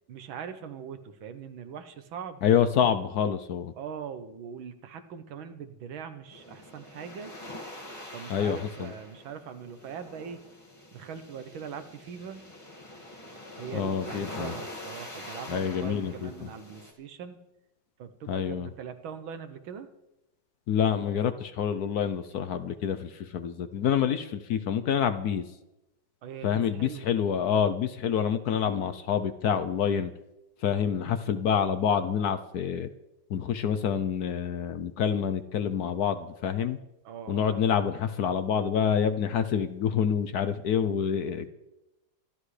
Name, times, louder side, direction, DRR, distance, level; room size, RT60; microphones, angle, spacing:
voice 1, 0.1-2.4 3.8-7.7 8.1-10.4 10.9-12.5 13.6-17.4 18.0-19.9 26.2-27.1 30.9-31.2 37.1-37.8, right 7 dB, 75° right, 9 dB, 1.8 m, -41 dB
voice 2, 2.4-3.7 8.3-8.9 13.7-14.5 15.5-16.3 18.3-18.7 20.7-25.4 26.4-30.1 30.6-32.9 33.3-36.8 37.3-41.5, left 8 dB, 65° left, 10 dB, 1.0 m, -27 dB
sound 1, 6.3-16.9, left 1 dB, 15° left, 2.0 m, -44 dB
25.5 x 12.0 x 3.3 m, 0.95 s
omnidirectional pair, 2.3 m